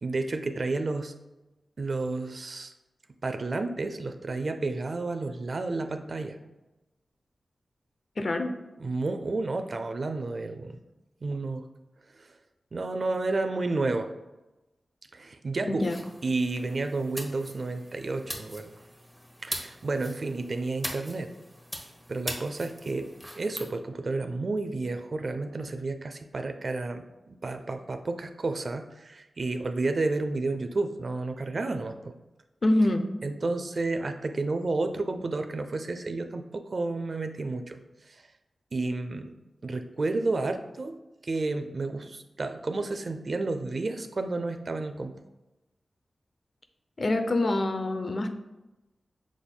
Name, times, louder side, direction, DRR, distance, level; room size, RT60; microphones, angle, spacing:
voice 1, 0.0-1.1 1.8-2.7 3.2-6.4 8.8-10.8 11.2-11.7 12.1-12.3 12.7-14.1 15.1-15.9 16.2-18.7 19.4-21.3 22.1-23.1 23.3-32.1 33.2-38.3 38.7-39.3 39.6-41.0 41.2-45.1, right 3 dB, 60° right, 7 dB, 0.4 m, -31 dB
voice 2, 8.2-8.5 15.7-16.0 32.6-33.1 47.0-48.3, left 1 dB, 55° left, 7 dB, 0.5 m, -25 dB
sound 1, 15.8-23.7, equal, 5° left, 0.9 m, -41 dB
6.1 x 3.5 x 2.2 m, 1.0 s
cardioid pair, 45°, 0 cm